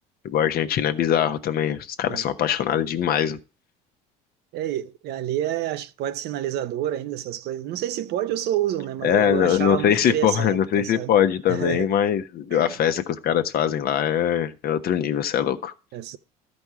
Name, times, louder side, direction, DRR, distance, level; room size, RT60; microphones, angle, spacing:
voice 1, 0.2-3.4 9.0-15.7, left 9 dB, 55° left, 1.0 m, -22 dB
voice 2, 4.5-11.1 11.5-11.9 12.5-12.8 15.9-16.2, right 12 dB, 65° right, 0.8 m, -28 dB
12.5 x 5.3 x 4.8 m
supercardioid pair, 85°, 18 cm